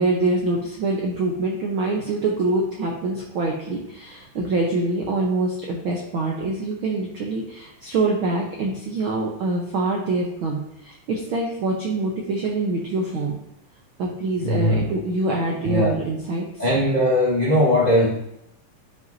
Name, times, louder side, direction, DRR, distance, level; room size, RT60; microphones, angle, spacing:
voice 1, 0.0-13.3 14.0-16.6, right 2 dB, 85° right, -1 dB, 1.1 m, -25 dB
voice 2, 14.4-14.8 15.6-15.9 16.6-18.1, left 1 dB, 25° left, -6 dB, 0.8 m, -19 dB
11.0 x 5.3 x 2.7 m, 0.82 s
omnidirectional pair, 3.6 m